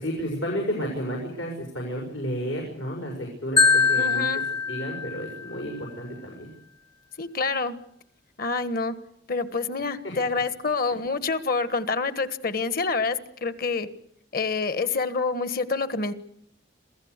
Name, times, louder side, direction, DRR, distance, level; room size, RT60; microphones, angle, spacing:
voice 1, 0.0-4.4 4.7-6.5 9.8-10.2, equal, 85° left, -1 dB, 6.3 m, -32 dB
Marimba xylophone, 3.6-5.6, left 5 dB, 25° left, 0.9 m, -23 dB
voice 2, 3.9-4.5 7.2-7.8 8.4-8.9 9.3-13.9 14.3-16.1, left 4 dB, 50° left, 12 dB, 1.5 m, -27 dB
27.0 x 16.5 x 8.2 m, 0.70 s
head